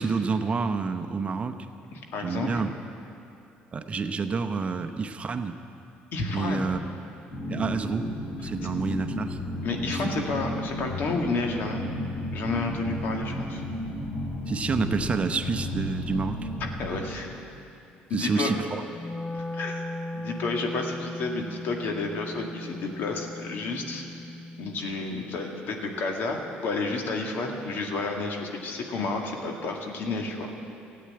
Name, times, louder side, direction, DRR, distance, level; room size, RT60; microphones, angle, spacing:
voice 1, 0.0-1.6 2.2-2.7 3.7-5.6 6.3-6.8 7.5-8.1 8.4-9.4 9.9-10.1 14.5-16.4 18.1-18.8, right 4 dB, 35° right, 8 dB, 0.8 m, -28 dB
voice 2, 1.9-2.6 6.1-6.7 8.4-8.5 9.6-11.9 12.3-13.6 16.6-17.4 18.1-18.5 19.3-19.8 20.1-24.1 24.6-30.5, left 3 dB, 65° left, 2 dB, 1.9 m, -31 dB
sound 1, 7.3-17.1, left 1 dB, 45° left, 3.0 m, -33 dB
Wind instrument woodwind instrument, 18.9-25.1, left 1 dB, 15° left, 0.5 m, -38 dB
13.5 x 8.7 x 8.7 m, 2.6 s
cardioid pair, 90°, 4 cm